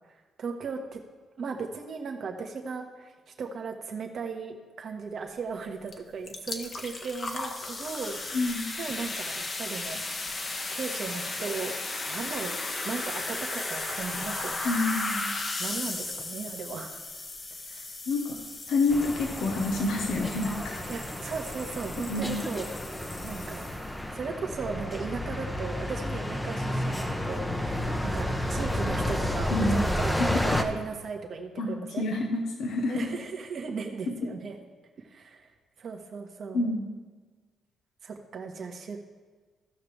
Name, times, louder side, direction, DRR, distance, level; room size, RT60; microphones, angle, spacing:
voice 1, 0.4-1.0 1.4-8.2 8.8-10.0 10.7-11.8 12.1-14.7 15.6-17.0 17.7-17.9 20.9-22.7 23.2-23.7 24.1-30.1 30.6-32.0 32.9-34.6 35.0-35.5 35.8-36.7 38.0-39.0, right 5 dB, 55° right, 3 dB, 1.4 m, -37 dB
sound 1, 5.9-6.0 6.3-24.0, left 2 dB, 40° left, 1.2 m, -36 dB
voice 2, 8.3-8.7 14.6-15.3 18.1-18.4 18.7-20.9 22.0-22.4 29.5-29.8 30.2-30.4 31.6-31.7 32.0-33.1 34.1-34.3 36.5-36.9, left 2 dB, 75° left, 2 dB, 1.1 m, -28 dB
sound 2, 18.9-30.6, left 1 dB, 10° left, 0.9 m, -31 dB
16.0 x 5.9 x 3.4 m, 1.4 s
cardioid pair, 90°, 0 cm